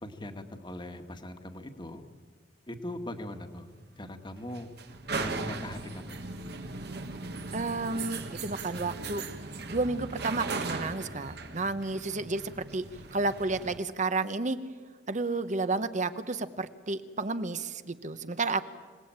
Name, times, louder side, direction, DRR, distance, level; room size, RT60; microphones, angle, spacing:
voice 1, 0.0-2.0 2.7-3.7 4.0-4.7 5.1-6.1, left 1 dB, 25° left, 6 dB, 1.7 m, -40 dB
sound 1, 3.1-13.8, right 3 dB, 65° right, 1.8 m, -38 dB
voice 2, 7.5-9.2 9.7-12.9 13.1-14.6 15.1-18.6, right 3 dB, 45° right, 12 dB, 1.0 m, -31 dB
26.0 x 18.5 x 8.9 m, 1.5 s
head